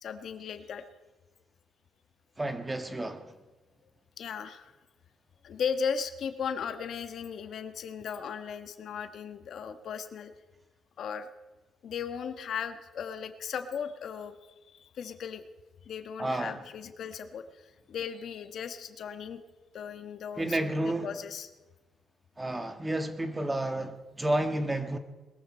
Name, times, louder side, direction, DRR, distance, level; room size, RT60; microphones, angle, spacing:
voice 1, 0.0-0.8 4.2-4.7 5.4-10.3 11.0-11.3 11.8-14.3 14.7-15.4 15.9-19.4 19.7-21.5, left 7 dB, 70° left, 1.3 m, -37 dB
voice 2, 2.4-3.3 16.2-16.6 20.4-21.1 22.4-25.0, right 1 dB, 15° right, 1.5 m, -31 dB
21.0 x 14.5 x 4.4 m
cardioid pair, 105°, 0 cm